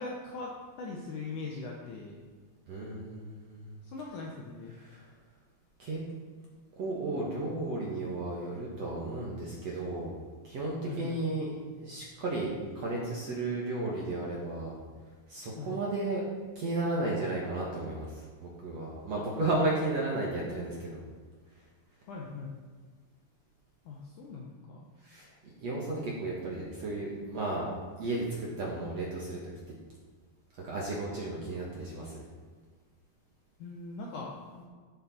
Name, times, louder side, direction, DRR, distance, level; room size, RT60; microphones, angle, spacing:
voice 1, 0.0-2.2 3.8-4.7 10.8-11.2 15.6-15.8 19.2-19.3 20.5-20.9 22.1-22.5 23.9-24.9 33.6-34.6, left 3 dB, 90° left, -2 dB, 1.7 m, -41 dB
voice 2, 2.7-3.8 4.9-5.0 5.8-6.0 6.8-10.1 10.4-11.5 11.8-14.7 15.3-16.2 16.6-21.0 25.0-25.3 25.6-27.7 28.0-29.5 30.6-32.1, right 2 dB, 60° right, -4 dB, 1.7 m, -33 dB
14.5 x 6.9 x 4.3 m, 1.5 s
omnidirectional pair, 5.1 m